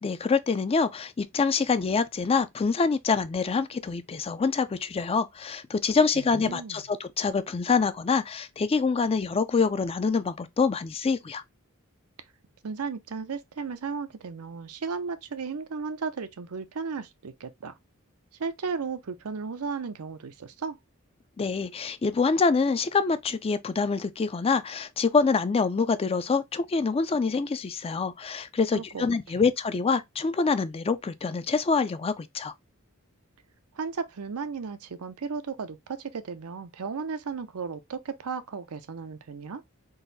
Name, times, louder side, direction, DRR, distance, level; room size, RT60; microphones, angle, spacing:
voice 1, 0.0-11.4 21.4-32.5, left 4 dB, 25° left, 0.4 m, -26 dB
voice 2, 6.2-6.8 12.6-17.8 18.4-20.8 28.7-29.4 33.7-39.6, right 5 dB, 85° right, 0.6 m, -35 dB
3.9 x 2.6 x 3.9 m
head